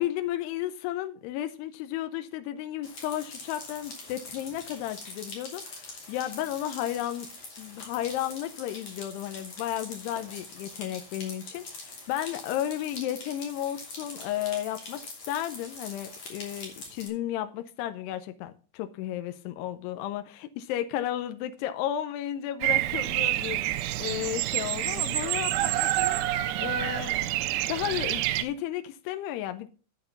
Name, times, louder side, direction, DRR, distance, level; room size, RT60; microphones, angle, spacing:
voice 1, 0.0-7.3 7.6-15.0 15.3-23.6 24.0-26.2 26.6-27.2 27.7-29.7, left 12 dB, 90° left, 2.8 m, -33 dB
sound 1, 2.8-17.1, left 3 dB, 40° left, 3.7 m, -44 dB
Bird vocalization bird call bird song, 22.6-28.4, right 15 dB, 85° right, 2.6 m, -28 dB
8.8 x 8.1 x 5.7 m
omnidirectional pair, 4.6 m